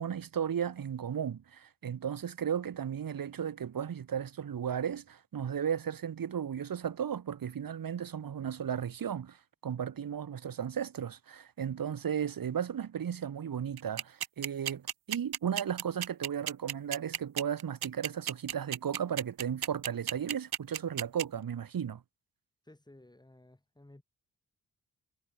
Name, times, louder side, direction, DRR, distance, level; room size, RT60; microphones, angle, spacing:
voice 1, 0.0-9.4 9.6-22.0, right 8 dB, 60° right, 1.4 m, -35 dB
sound 1, 13.8-21.2, right 10 dB, 80° right, 1.0 m, -33 dB
voice 2, 22.6-24.0, left 1 dB, 10° left, 5.8 m, -56 dB
wide cardioid pair, 170°, 38 cm